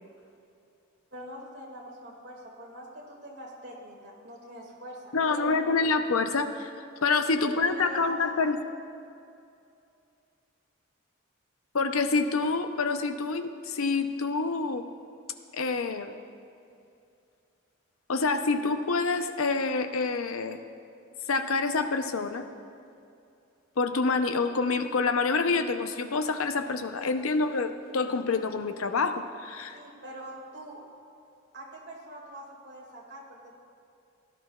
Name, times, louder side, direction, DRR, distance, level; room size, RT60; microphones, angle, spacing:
voice 1, 1.1-5.8 7.4-8.4 29.7-30.8 31.5-33.6, equal, 55° right, -2 dB, 2.0 m, -44 dB
voice 2, 5.1-6.7 7.0-8.6 11.7-14.8 15.5-16.2 18.1-20.6 21.3-22.5 23.8-29.8, left 4 dB, 85° left, 8 dB, 0.6 m, -27 dB
17.5 x 11.5 x 2.3 m, 2.5 s
head